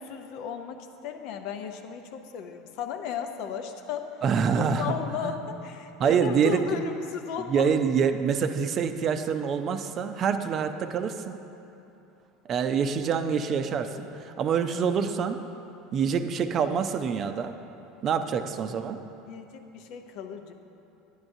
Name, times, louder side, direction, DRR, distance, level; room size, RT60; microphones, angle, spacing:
voice 1, 0.0-4.2 4.7-7.7 19.3-20.5, left 7 dB, 65° left, 6 dB, 0.6 m, -35 dB
voice 2, 4.2-4.9 5.2-5.4 6.0-6.6 7.5-11.4 12.5-15.4 15.9-17.5 18.0-19.0, right 6 dB, 45° right, 8 dB, 0.5 m, -26 dB
11.0 x 9.5 x 2.7 m, 2.9 s
hypercardioid pair, 90°, 0 cm